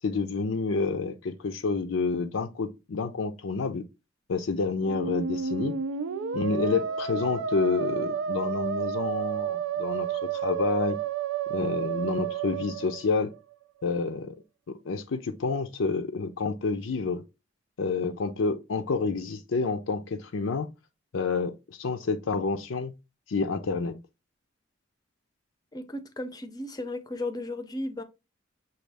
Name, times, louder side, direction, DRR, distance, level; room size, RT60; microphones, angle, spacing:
voice 1, 0.0-3.9 4.3-5.7 6.3-11.0 11.5-13.3 13.8-14.4 14.8-17.2 17.8-20.7 21.1-22.9 23.3-23.9, left 4 dB, 75° left, 0.5 m, -29 dB
Musical instrument, 4.8-13.5, right 7 dB, 90° right, 0.4 m, -31 dB
voice 2, 25.7-28.0, left 1 dB, 20° left, 0.5 m, -35 dB
6.2 x 2.3 x 3.3 m
head